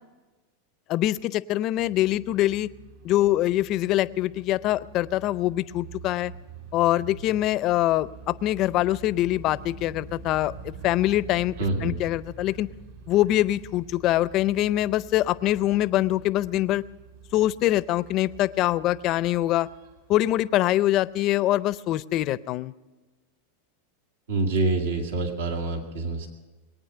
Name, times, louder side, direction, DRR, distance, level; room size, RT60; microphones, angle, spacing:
voice 1, 0.9-2.7 3.0-6.3 6.7-11.5 11.8-12.7 13.1-16.8 17.3-19.7 20.1-22.7, left 14 dB, 45° left, 18 dB, 0.5 m, -24 dB
sound 1, 1.8-21.3, right 4 dB, 60° right, 4.4 m, -46 dB
voice 2, 11.6-12.0 24.3-26.3, right 3 dB, 85° right, 3 dB, 2.0 m, -26 dB
21.5 x 9.2 x 6.7 m, 1.2 s
supercardioid pair, 125°, 0 cm